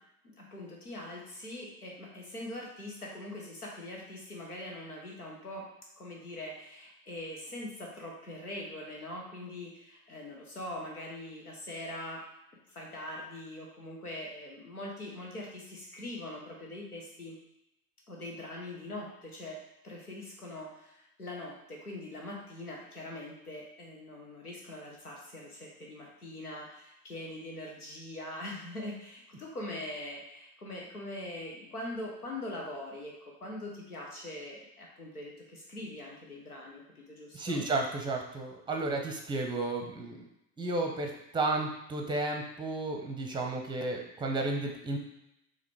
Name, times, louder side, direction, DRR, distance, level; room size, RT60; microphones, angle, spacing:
voice 1, 0.4-5.7 6.0-12.2 12.7-17.4 18.1-19.6 19.8-37.6, left 1 dB, 85° left, -1 dB, 1.2 m, -42 dB
voice 2, 37.3-40.3 40.6-45.0, right 2 dB, 10° right, 2 dB, 0.7 m, -33 dB
4.9 x 3.0 x 3.3 m, 0.83 s
figure-of-eight pair, 80°, 43 cm